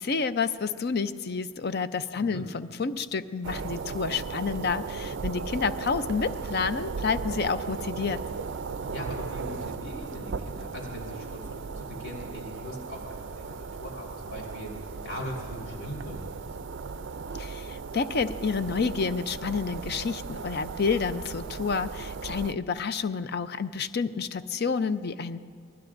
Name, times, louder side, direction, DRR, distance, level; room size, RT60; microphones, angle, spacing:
voice 1, 0.0-8.2 17.4-25.4, left 5 dB, 50° left, 12 dB, 0.5 m, -29 dB
voice 2, 2.1-2.4 8.8-14.7 15.0-16.3, equal, 65° left, -2 dB, 4.1 m, -40 dB
sound 1, 3.4-22.5, right 4 dB, 60° right, 0.4 m, -36 dB
27.0 x 20.0 x 2.6 m, 2.2 s
head